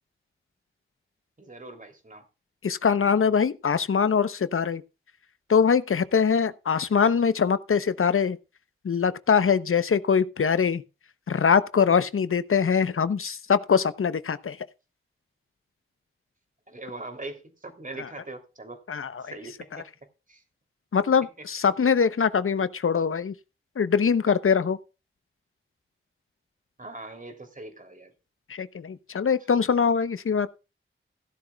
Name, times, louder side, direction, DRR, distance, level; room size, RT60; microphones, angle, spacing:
voice 1, 1.4-2.3 16.7-18.8 19.2-19.9 20.3-20.4 26.8-28.1, right 2 dB, 40° right, 3.1 m, -41 dB
voice 2, 2.6-4.8 5.5-8.4 8.8-10.8 11.3-14.6 18.9-19.3 20.9-23.3 23.8-24.8 28.5-30.5, left 6 dB, 85° left, 0.8 m, -23 dB
16.0 x 11.5 x 2.3 m
wide cardioid pair, 95°, 21 cm